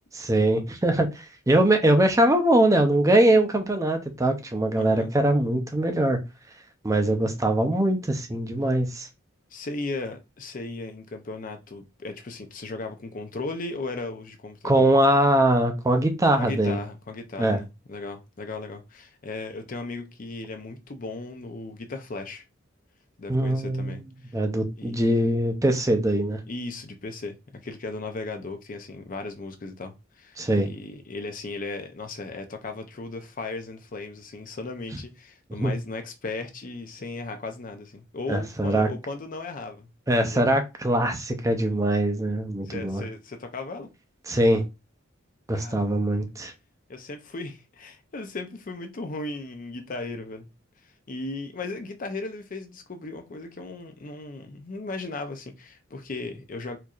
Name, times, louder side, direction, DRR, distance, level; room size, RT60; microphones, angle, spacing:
voice 1, 0.2-6.2 6.8-9.1 14.6-16.8 17.4-17.6 23.3-24.0 24.3-26.4 30.4-30.7 35.6-35.7 38.3-38.9 40.1-43.0 44.3-44.6 45.5-46.5, right 1 dB, 15° right, 0.5 m, -22 dB
voice 2, 4.8-5.1 9.5-14.9 16.4-22.4 23.2-24.4 24.8-25.0 26.5-27.4 27.6-40.5 42.6-43.9 45.5-45.9 46.9-50.5 51.1-56.8, left 3 dB, 40° left, 0.5 m, -36 dB
4.4 x 2.6 x 2.4 m
head